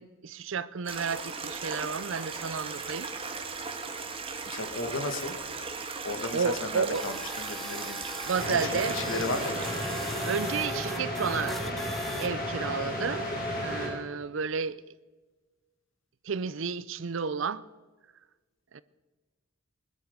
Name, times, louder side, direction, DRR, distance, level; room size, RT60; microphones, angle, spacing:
voice 1, 0.0-3.1 6.3-7.0 8.3-9.0 10.3-11.6 12.2-13.3 13.6-14.8 16.2-17.6 18.7-18.8, right 5 dB, 65° right, 0.5 m, -31 dB
Stream, 0.9-10.6, right 4 dB, 25° right, 1.5 m, -37 dB
voice 2, 4.5-5.3 6.0-8.2 8.5-9.7, left 2 dB, 65° left, 1.7 m, -35 dB
sound 1, 6.9-12.3, equal, ahead, 0.9 m, -42 dB
sound 2, 8.4-13.9, left 1 dB, 45° left, 4.7 m, -33 dB
21.0 x 13.0 x 5.1 m
head